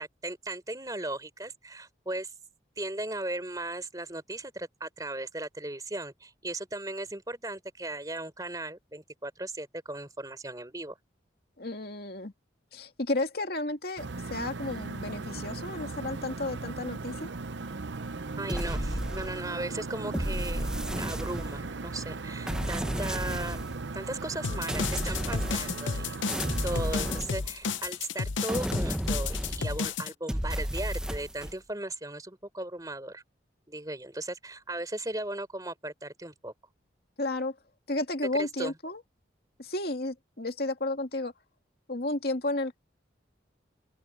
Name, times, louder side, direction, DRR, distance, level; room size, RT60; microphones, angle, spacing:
voice 1, 0.0-2.3 2.8-11.0 18.4-20.7 21.0-23.6 23.9-26.1 26.6-33.2 33.7-36.5 38.4-38.7, right 2 dB, 20° right, 3.9 m, -37 dB
voice 2, 11.6-12.3 12.7-17.3 37.2-37.5 37.9-39.0 39.6-41.3 41.9-42.8, left 2 dB, 55° left, 2.4 m, -32 dB
sound 1, 14.0-27.2, right 3 dB, 75° right, 0.8 m, -38 dB
sound 2, 18.5-19.6 20.1-21.8 22.5-23.8 24.7-26.0 26.3-27.9 28.5-29.8 30.3-31.5, equal, 5° right, 0.9 m, -33 dB
sound 3, 24.4-30.1, left 5 dB, 85° left, 0.8 m, -32 dB
open air
head